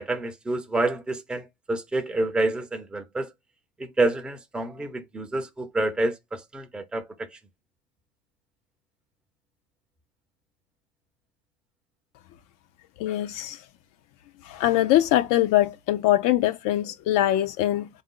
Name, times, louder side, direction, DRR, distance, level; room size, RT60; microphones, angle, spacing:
voice 1, 0.0-3.3 3.8-7.0 7.3-7.4, right 2 dB, ahead, 0.5 m, -28 dB
voice 2, 13.0-13.6 14.4-17.9, left 14 dB, 55° left, 0.5 m, -23 dB
3.5 x 2.6 x 3.6 m
supercardioid pair, 105°, 38 cm